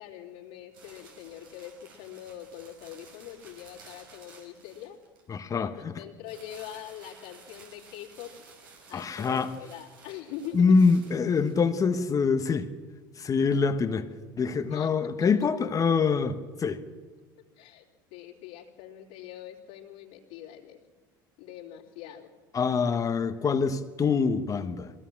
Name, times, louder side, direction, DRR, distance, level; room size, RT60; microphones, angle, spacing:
voice 1, 0.0-5.0 5.8-8.3 8.9-10.6 11.7-11.8 14.7-14.9 17.5-17.8 18.1-20.8 21.4-22.3, left 11 dB, 70° left, -2 dB, 3.1 m, -43 dB
sound 1, 0.7-5.3 6.2-11.9, right 4 dB, 85° right, 5.1 m, -54 dB
voice 2, 5.3-6.0 8.9-9.5 10.5-12.7 13.2-14.1 14.4-16.8 22.5-24.9, left 5 dB, 30° left, 8 dB, 1.2 m, -25 dB
21.5 x 16.5 x 7.4 m, 1.4 s
hypercardioid pair, 85°, 11 cm